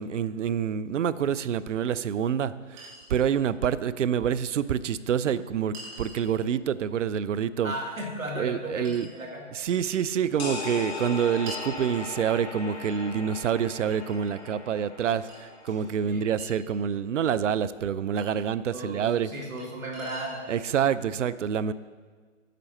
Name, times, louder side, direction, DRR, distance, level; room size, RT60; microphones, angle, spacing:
voice 1, 0.0-7.7 8.4-9.1 9.5-19.3 20.5-21.7, right 8 dB, 65° right, 16 dB, 0.5 m, -27 dB
Chink clink, 1.8-1.9 2.8-3.1 4.3-4.4 5.7-6.3 7.7-7.8 8.8-9.1 9.9-10.1 11.5-11.7 12.8-13.0 13.9-14.6 15.3-15.4 16.4-16.5 18.2-18.3 19.6-19.7 19.9-20.4, right 1 dB, 35° right, 2.6 m, -44 dB
voice 2, 7.6-9.4 16.0-16.2 18.7-19.0 19.3-20.5, right 1 dB, 80° right, -1 dB, 2.5 m, -35 dB
sound 1, 10.4-16.0, left 4 dB, 25° left, 1.1 m, -38 dB
9.2 x 6.4 x 4.3 m, 1.6 s
figure-of-eight pair, 145°, 40 cm